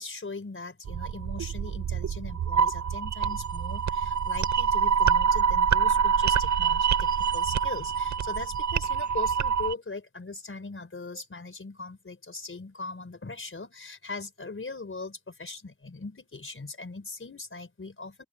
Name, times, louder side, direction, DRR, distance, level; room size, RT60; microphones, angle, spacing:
voice 1, 0.0-18.2, left 3 dB, 40° left, 4.8 m, -40 dB
sound 1, 0.9-9.7, right 7 dB, 55° right, 0.7 m, -26 dB
open air
wide cardioid pair, 90°, 33 cm